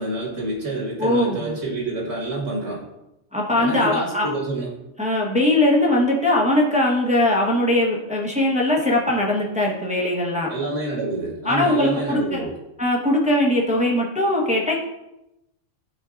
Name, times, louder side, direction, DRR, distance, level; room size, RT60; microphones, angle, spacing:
voice 1, 0.0-2.8 3.6-4.7 10.5-12.5, right 2 dB, 65° right, -3 dB, 2.0 m, -28 dB
voice 2, 1.0-1.6 3.3-4.3 5.0-10.5 11.4-12.5 12.8-14.7, left 1 dB, 5° right, -2 dB, 1.0 m, -20 dB
12.5 x 4.5 x 2.5 m, 0.89 s
omnidirectional pair, 1.4 m